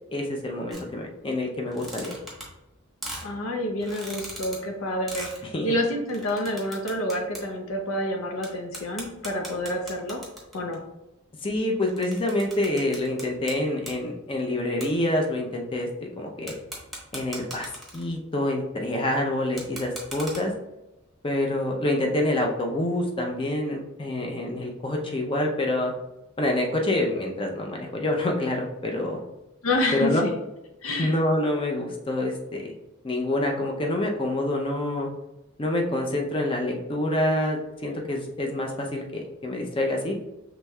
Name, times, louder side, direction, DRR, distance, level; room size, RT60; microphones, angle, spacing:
voice 1, 0.1-2.1 5.5-5.8 11.4-16.5 17.1-20.5 21.2-25.9 26.4-29.2 29.9-30.2 31.0-32.7 33.0-35.1 35.6-40.1, left 1 dB, 25° left, 0 dB, 0.6 m, -27 dB
sound 1, 0.7-0.8 1.6-2.7 3.0-3.3 3.8-4.6 5.0-5.4 6.1-7.4 7.7-7.8 8.4-8.5 8.7-10.7 11.5-13.5 13.8-14.0 14.8-14.9 16.5-18.2 19.5-20.4, right 1 dB, ahead, 1.1 m, -38 dB
voice 2, 3.2-5.3 5.6-10.2 10.5-10.8 29.6-30.3 30.8-31.1, left 1 dB, 75° left, 2 dB, 0.7 m, -28 dB
5.9 x 3.1 x 2.3 m, 0.97 s
head